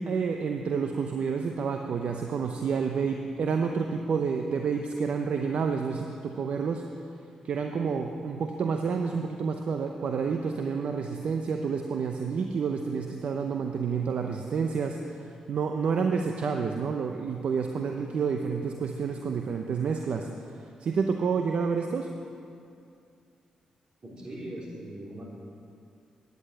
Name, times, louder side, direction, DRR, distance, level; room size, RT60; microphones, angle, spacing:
voice 1, 0.0-6.9 7.4-20.3 20.8-22.1, right 5 dB, 65° right, 4 dB, 0.7 m, -29 dB
voice 2, 24.0-25.2, right 1 dB, 45° right, -3 dB, 3.8 m, -40 dB
10.5 x 9.8 x 7.7 m, 2.5 s
supercardioid pair, 55°, 2 cm